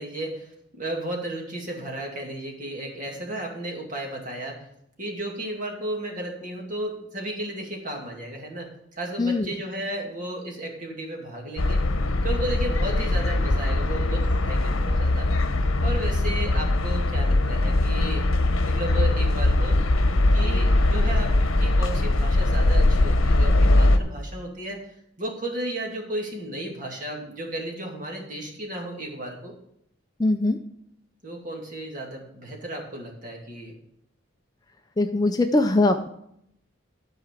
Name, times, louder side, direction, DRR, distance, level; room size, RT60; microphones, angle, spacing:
voice 1, 0.0-4.7 5.0-11.8 12.2-15.3 15.8-18.2 18.6-19.8 20.3-24.8 25.2-29.5 31.2-33.8, right 1 dB, 40° right, 1 dB, 2.2 m, -34 dB
sound 1, 11.6-24.0, left 2 dB, 85° left, 0.9 m, -21 dB
voice 2, 30.2-30.6 35.0-36.1, left 2 dB, 20° left, 6 dB, 0.4 m, -21 dB
12.5 x 4.8 x 6.6 m, 0.73 s
head